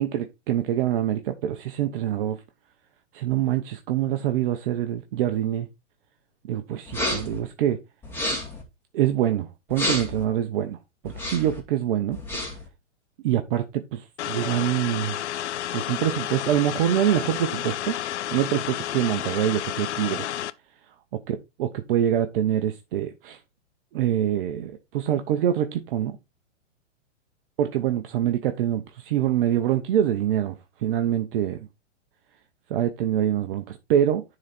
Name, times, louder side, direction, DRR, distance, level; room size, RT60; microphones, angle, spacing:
voice 1, 0.0-2.4 3.1-5.7 6.5-7.8 8.9-10.8 11.0-12.2 13.2-15.2 15.7-18.0 18.3-20.3 21.3-23.4 23.9-26.2 27.6-30.5 30.8-31.7 32.7-34.2, right 11 dB, 45° right, 1.0 m, -25 dB
sound 1, 6.9-7.4 8.0-8.6 9.7-10.2 11.1-11.6 12.1-12.7, left 1 dB, 5° left, 2.4 m, -29 dB
sound 2, 14.2-20.5, left 12 dB, 65° left, 0.7 m, -31 dB
10.5 x 4.0 x 4.2 m
hypercardioid pair, 135°, 37 cm